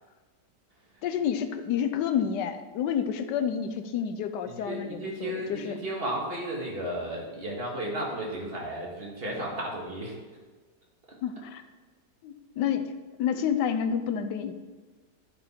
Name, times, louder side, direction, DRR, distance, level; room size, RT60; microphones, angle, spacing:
voice 1, 1.0-5.7 11.2-11.6 12.2-12.9 13.2-14.5, left 8 dB, 80° left, 10 dB, 1.3 m, -29 dB
voice 2, 4.4-10.2, right 1 dB, 35° right, -2 dB, 1.8 m, -34 dB
12.0 x 5.2 x 4.3 m, 1.4 s
omnidirectional pair, 1.9 m